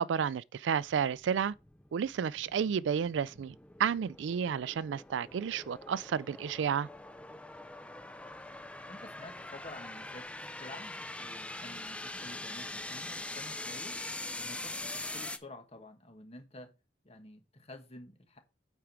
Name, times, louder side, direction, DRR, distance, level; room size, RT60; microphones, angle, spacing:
voice 1, 0.0-1.5 1.9-3.5 3.8-6.9, right 7 dB, 80° right, 0.3 m, -31 dB
sound 1, 0.9-15.4, left 2 dB, 5° left, 0.5 m, -43 dB
voice 2, 8.8-14.0 14.4-16.7 17.0-18.4, left 1 dB, 35° left, 1.4 m, -50 dB
8.7 x 4.5 x 4.7 m
head